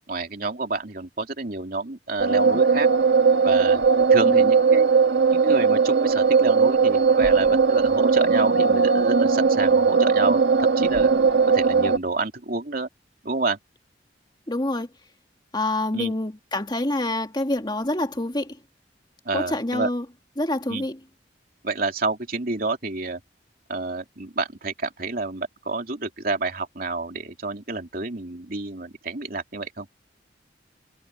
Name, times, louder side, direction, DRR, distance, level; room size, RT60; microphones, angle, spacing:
voice 1, 0.1-2.9 3.4-3.8 4.1-4.9 5.3-11.1 11.4-12.9 13.2-13.6 15.9-16.1 19.2-19.9 20.7-20.9 21.6-23.2 23.7-29.9, right 3 dB, 55° right, 3.1 m, -29 dB
sound 1, 2.2-12.0, right 5 dB, 80° right, 1.3 m, -18 dB
voice 2, 14.5-14.9 15.5-18.6 19.3-20.0 20.4-21.0, left 1 dB, 25° left, 2.3 m, -26 dB
head